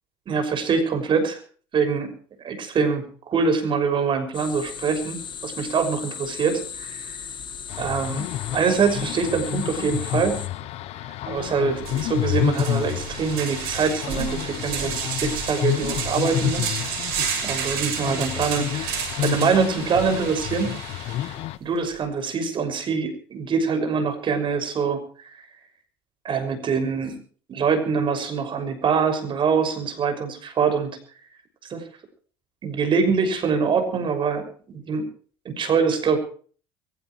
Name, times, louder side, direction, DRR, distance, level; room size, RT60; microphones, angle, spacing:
voice 1, 0.3-1.4 1.7-2.1 2.4-7.2 7.8-10.4 11.3-16.8 17.4-20.8 21.6-25.4 26.2-27.2 27.5-31.0 31.7-31.8 32.6-35.1 35.4-36.2, right 5 dB, 45° right, 8 dB, 6.1 m, -24 dB
sound 1, 4.3-10.5, left 7 dB, 40° left, 2.2 m, -37 dB
sound 2, 7.7-21.6, left 13 dB, 60° left, 1.0 m, -29 dB
sound 3, 11.4-11.5 11.8-21.4, right 7 dB, 80° right, 6.4 m, -31 dB
23.5 x 16.0 x 3.2 m, 0.43 s
hypercardioid pair, 75°, 12 cm